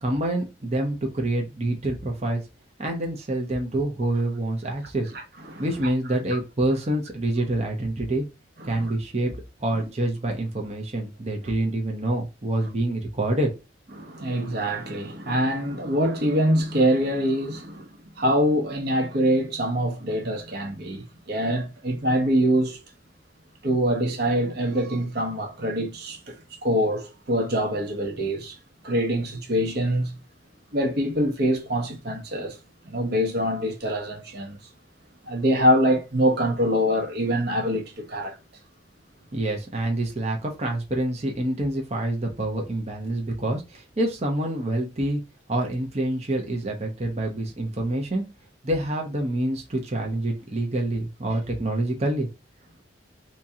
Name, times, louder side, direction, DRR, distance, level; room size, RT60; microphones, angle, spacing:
voice 1, 0.0-2.4 2.8-5.1 5.6-8.3 8.6-9.3 9.6-13.5 39.3-45.2 45.5-48.2 48.6-52.3, right 1 dB, 35° right, 0.8 m, -27 dB
voice 2, 8.6-8.9 14.0-17.9 18.2-22.8 23.6-26.4 26.6-28.6 28.8-30.1 30.7-32.6 32.8-34.6 35.2-38.4, equal, 60° right, 1.1 m, -24 dB
2.9 x 2.9 x 3.6 m
head